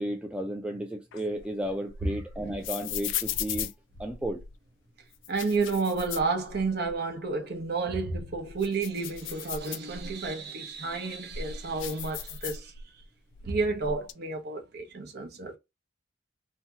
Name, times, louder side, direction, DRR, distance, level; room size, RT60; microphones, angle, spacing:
voice 1, 0.0-3.7 4.0-4.4, equal, 5° right, 0.4 m, -33 dB
sound 1, 1.1-4.5 5.1-7.0 7.3-7.4 7.9-10.3 10.9-13.0 13.3-14.1, left 8 dB, 70° left, 0.3 m, -37 dB
voice 2, 5.3-12.7 13.4-15.6, right 3 dB, 55° right, 0.8 m, -31 dB
2.8 x 2.3 x 2.8 m
head